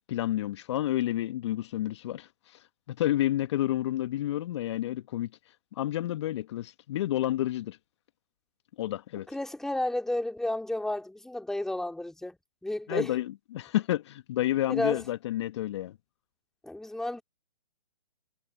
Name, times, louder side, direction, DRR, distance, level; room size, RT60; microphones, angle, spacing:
voice 1, 0.1-5.3 5.7-7.8 8.8-9.3 12.9-15.9, left 13 dB, 45° left, 1.7 m, -30 dB
voice 2, 9.3-12.4 12.6-13.2 14.7-15.0 16.6-17.2, left 1 dB, ahead, 2.9 m, -32 dB
figure-of-eight pair, 130°, 20 cm